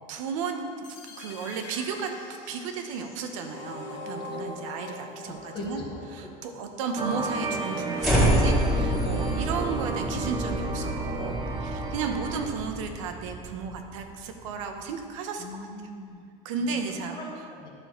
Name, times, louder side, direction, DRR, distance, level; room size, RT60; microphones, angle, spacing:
voice 1, 0.1-0.6 1.2-2.1 2.5-5.8 6.1-15.7 16.4-17.2, right 5 dB, 80° right, 5 dB, 1.1 m, -34 dB
sound 1, 0.8-6.8, left 3 dB, 85° left, 1.4 m, -43 dB
voice 2, 4.3-4.6 5.3-6.6 15.4-16.3 16.6-17.7, left 2 dB, 30° left, -1 dB, 1.6 m, -41 dB
sound 2, 7.0-12.5, right 3 dB, 25° right, 0.8 m, -33 dB
sound 3, 8.0-14.3, equal, ahead, 2.4 m, -27 dB
11.0 x 6.3 x 4.5 m, 2.3 s
supercardioid pair, 150°, 16 cm